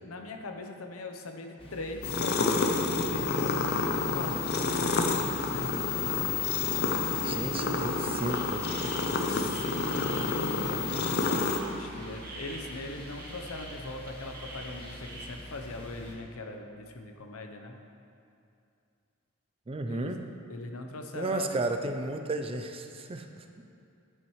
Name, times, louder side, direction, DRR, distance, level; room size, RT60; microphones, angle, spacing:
voice 1, 0.0-5.0 5.2-5.7 6.3-6.8 7.2-7.8 9.1-17.8 19.9-20.2 20.5-21.9, left 2 dB, 80° left, 4 dB, 0.8 m, -41 dB
sound 1, 1.6-16.2, left 1 dB, 25° left, 1.1 m, -46 dB
sound 2, 2.0-11.6, left 4 dB, 50° left, 0.6 m, -29 dB
voice 2, 7.2-8.6 19.7-20.2 21.1-23.4, right 2 dB, 25° right, 6 dB, 0.4 m, -33 dB
sound 3, 8.3-15.3, right 2 dB, 45° right, 1.1 m, -46 dB
10.5 x 8.6 x 3.2 m, 2.5 s
head